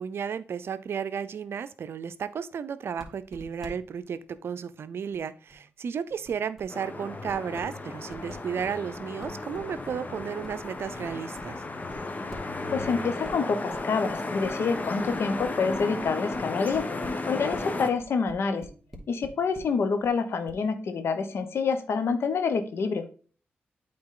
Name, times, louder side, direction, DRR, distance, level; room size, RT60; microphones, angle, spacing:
voice 1, 0.0-11.6, right 7 dB, 70° right, 14 dB, 0.5 m, -33 dB
sound 1, 3.0-3.7 4.0-4.1 4.3-4.4 5.1-5.8 6.1-6.9 7.3-7.8 8.1-19.8 20.0-20.1 20.5-20.6, equal, ahead, 2.6 m, -49 dB
sound 2, 6.7-17.9, left 2 dB, 40° left, 1.2 m, -34 dB
voice 2, 12.7-16.9 17.3-18.7 19.1-23.1, left 5 dB, 70° left, 9 dB, 1.0 m, -27 dB
8.6 x 4.0 x 3.8 m, 0.39 s
supercardioid pair, 45°, 4 cm